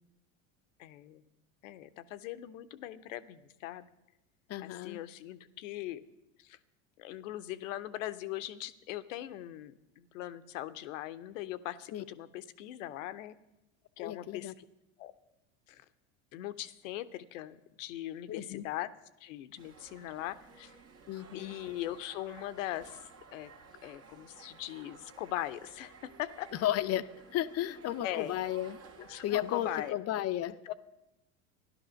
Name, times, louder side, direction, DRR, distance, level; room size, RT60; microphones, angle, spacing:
voice 1, 0.8-1.2 1.6-3.9 4.6-6.0 6.4-6.6 7.0-13.4 14.0-14.6 15.0-15.1 15.7-15.8 16.3-18.9 19.2-20.7 21.3-23.5 23.8-26.5 28.0-28.3 29.1-30.0 30.6-30.7, left 14 dB, 80° left, 13 dB, 0.9 m, -40 dB
voice 2, 4.5-5.0 11.9-12.0 14.0-14.5 18.3-18.6 21.1-21.6 26.5-27.0 27.3-28.8 29.2-30.7, left 12 dB, 40° left, 12 dB, 0.7 m, -33 dB
sound 1, 19.6-29.9, right 5 dB, 40° right, 1.6 m, -55 dB
13.0 x 11.5 x 6.4 m, 0.91 s
hypercardioid pair, 95°, 38 cm